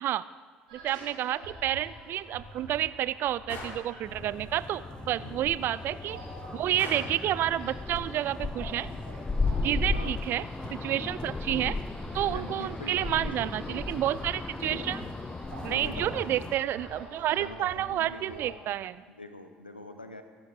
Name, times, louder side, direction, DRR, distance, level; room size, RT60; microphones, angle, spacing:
voice 1, 0.7-6.2 6.5-8.9 9.6-10.4 10.7-11.8 12.1-15.0 15.6-19.0, right 12 dB, 50° right, 17 dB, 0.5 m, -30 dB
sound 1, 0.7-18.5, right 2 dB, 75° right, 5.6 m, -47 dB
Gunshot gunfire, 3.5-3.9 6.8-7.3, left 3 dB, 45° left, 2.7 m, -40 dB
sound 2, 4.0-16.6, left 3 dB, 20° left, 0.7 m, -35 dB
voice 2, 12.2-13.8 14.6-14.9 15.6-16.4 17.3-18.4 19.1-20.2, left 1 dB, 90° left, 8 dB, 0.9 m, -44 dB
23.0 x 11.5 x 3.7 m, 1.5 s
figure-of-eight pair, 55°, 5 cm